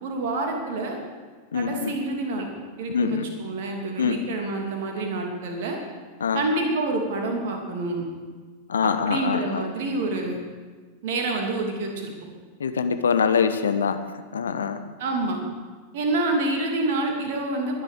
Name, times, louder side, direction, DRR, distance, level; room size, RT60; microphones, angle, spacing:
voice 1, 0.0-1.0 1.5-2.5 2.8-5.8 6.3-8.1 8.8-10.4 11.0-12.1 15.0-15.4 15.9-17.8, right 2 dB, 55° right, 2 dB, 3.0 m, -27 dB
voice 2, 1.5-2.0 2.9-3.3 4.0-4.2 6.2-6.5 8.7-9.7 12.6-14.0 14.3-14.8, left 6 dB, 70° left, 10 dB, 0.9 m, -24 dB
21.5 x 10.5 x 5.2 m, 1.4 s
figure-of-eight pair, 90°, 0 cm